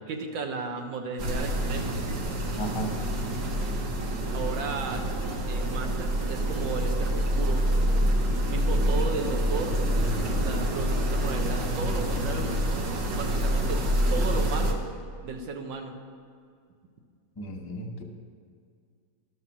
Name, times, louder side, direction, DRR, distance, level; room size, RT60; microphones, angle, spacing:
voice 1, 0.1-2.0 4.3-5.0 5.5-7.7 8.5-9.8 10.4-13.8 14.1-14.9 15.2-16.0, right 4 dB, 90° right, 4 dB, 1.7 m, -34 dB
sound 1, 1.2-14.7, equal, 70° right, 1.7 m, -27 dB
voice 2, 2.6-3.1 17.4-18.0, equal, 20° left, 1 dB, 0.6 m, -34 dB
12.5 x 5.8 x 6.0 m, 2.2 s
omnidirectional pair, 2.0 m